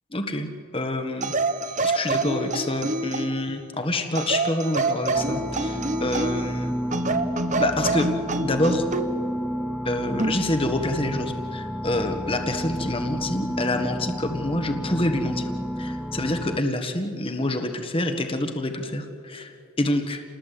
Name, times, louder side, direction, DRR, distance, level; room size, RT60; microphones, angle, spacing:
voice 1, 0.1-0.5 0.7-1.3 1.8-6.7 7.6-8.1 8.4-8.8 9.8-15.5 15.8-20.2, left 1 dB, 25° left, 6 dB, 1.5 m, -27 dB
sound 1, 1.2-3.5 4.1-6.5 6.9-9.1 10.2-10.4, right 2 dB, 35° right, 1.1 m, -26 dB
sound 2, 5.1-16.6, equal, ahead, 0.5 m, -31 dB
28.5 x 20.0 x 8.4 m, 2.6 s
head